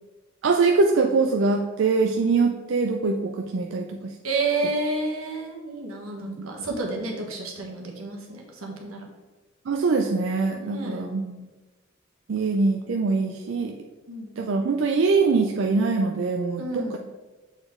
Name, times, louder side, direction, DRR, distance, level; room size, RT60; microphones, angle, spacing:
voice 1, 0.4-4.1 6.4-6.5 9.7-11.5 12.3-13.7 14.4-17.0, right 4 dB, 60° right, 2 dB, 0.4 m, -23 dB
voice 2, 4.2-9.0 10.6-11.1 14.1-14.4 16.6-17.0, right 3 dB, 85° right, 0 dB, 1.3 m, -30 dB
6.8 x 4.2 x 3.6 m, 1.2 s
head